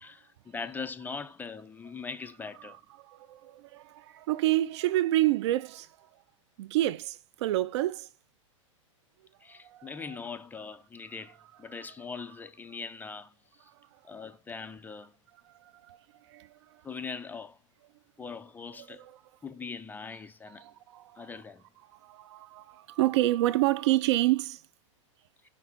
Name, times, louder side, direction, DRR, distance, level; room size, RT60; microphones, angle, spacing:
voice 1, 0.0-2.8 9.4-13.3 14.0-15.1 16.8-17.6 18.2-19.1 19.4-20.6 21.2-21.6, left 5 dB, 10° left, 0.5 m, -41 dB
voice 2, 3.1-5.9 6.6-8.1 9.7-9.9 15.9-16.0 16.3-16.5 18.9-19.1 20.6-21.3 22.0-24.6, right 16 dB, 60° right, 0.5 m, -28 dB
5.9 x 4.1 x 4.5 m
hypercardioid pair, 110°, 17 cm